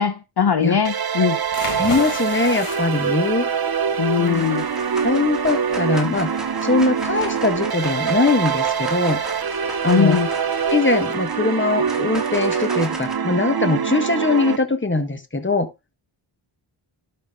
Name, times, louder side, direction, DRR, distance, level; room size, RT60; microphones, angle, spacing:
voice 1, 0.0-1.4 4.0-4.7 9.9-10.3, left 7 dB, 50° left, 0.9 m, -20 dB
sound 1, 0.8-14.6, right 7 dB, 45° right, 0.8 m, -24 dB
sound 2, 1.4-10.7, left 5 dB, 80° left, 2.0 m, -37 dB
voice 2, 1.8-3.5 4.2-4.5 5.0-9.2 9.8-10.2 10.7-15.7, left 3 dB, 25° left, 1.6 m, -21 dB
sound 3, 3.7-4.0 4.3-13.1, right 1 dB, ahead, 3.0 m, -36 dB
11.5 x 5.7 x 3.7 m
wide cardioid pair, 75°, 50 cm